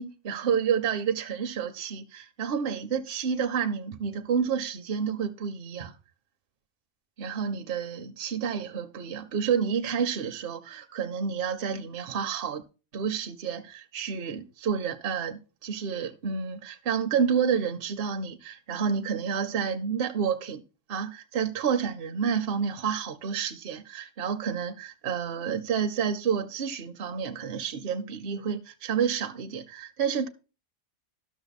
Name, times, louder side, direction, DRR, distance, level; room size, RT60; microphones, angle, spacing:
voice 1, 0.0-5.9 7.2-12.6 12.9-20.6 20.9-30.3, right 7 dB, 60° right, 0.8 m, -29 dB
12.0 x 6.3 x 4.0 m
omnidirectional pair, 1.2 m